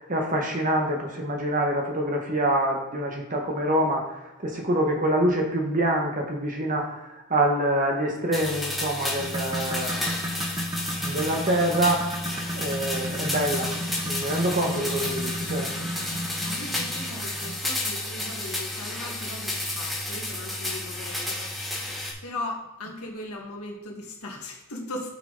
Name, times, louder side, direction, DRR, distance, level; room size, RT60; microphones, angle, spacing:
voice 1, 0.0-6.9 7.3-10.2 11.0-12.1 12.5-13.7 14.0-15.7, right 1 dB, 35° right, 1 dB, 1.3 m, -26 dB
sound 1, 8.3-22.1, left 1 dB, ahead, 1.5 m, -32 dB
sound 2, 9.2-17.6 19.0-19.1 19.6-19.7 20.4-20.5, equal, 15° right, 1.0 m, -34 dB
voice 2, 16.4-21.5 22.2-25.1, left 2 dB, 80° left, 0 dB, 1.8 m, -38 dB
8.1 x 6.1 x 4.0 m, 1.0 s
head